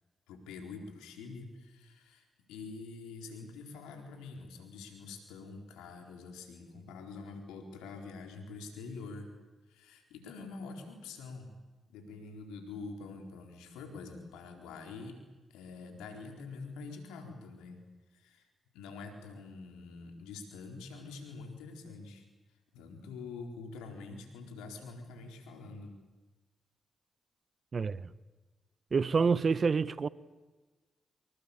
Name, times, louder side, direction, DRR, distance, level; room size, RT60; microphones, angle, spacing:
voice 1, 0.3-9.3 9.7-11.5 11.9-15.2 15.5-17.9 18.1-18.5 18.7-22.2 22.7-25.9, left 4 dB, 90° left, 4.2 m, -46 dB
voice 2, 27.7-28.1 28.9-30.1, right 5 dB, 50° right, 1.0 m, -27 dB
25.5 x 22.5 x 8.6 m
supercardioid pair, 45°, 0 cm